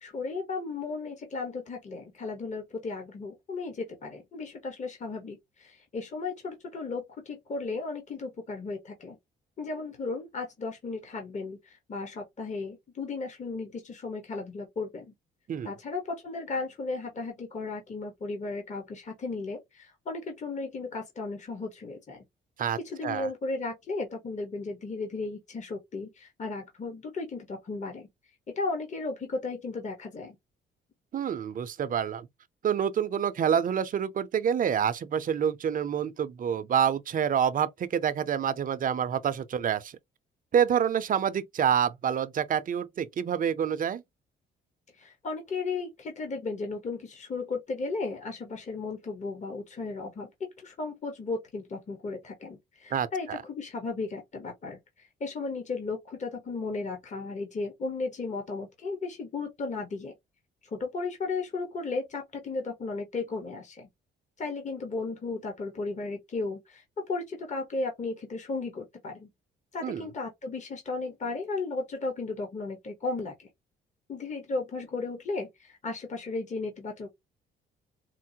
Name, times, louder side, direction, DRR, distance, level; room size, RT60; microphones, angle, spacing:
voice 1, 0.0-9.2 9.6-15.1 15.6-22.2 22.8-28.1 28.6-30.4 45.0-60.1 60.7-63.9 64.4-69.3 69.7-73.5 74.1-77.1, left 3 dB, 35° left, 1.1 m, -35 dB
voice 2, 22.6-23.3 31.1-32.3 32.6-40.0 40.5-44.0 52.9-53.4 69.8-70.1, right 8 dB, 45° right, 0.5 m, -27 dB
4.5 x 2.0 x 2.7 m
cardioid pair, 90°, 20 cm